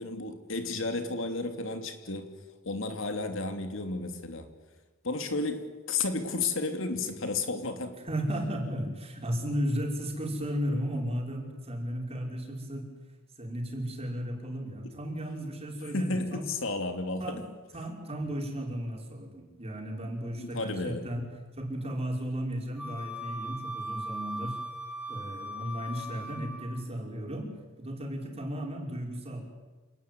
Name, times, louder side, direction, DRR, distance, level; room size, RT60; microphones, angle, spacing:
voice 1, 0.0-2.3 2.6-4.5 5.0-7.9 15.9-17.4 20.4-21.0, left 3 dB, 65° left, 7 dB, 2.9 m, -32 dB
voice 2, 8.0-12.9 13.3-16.4 17.2-17.4 17.7-24.6 25.1-27.5 27.8-29.4, equal, 30° right, 1 dB, 5.7 m, -34 dB
Wind instrument woodwind instrument, 22.8-26.8, equal, 5° right, 3.6 m, -39 dB
27.5 x 19.0 x 9.4 m, 1.3 s
head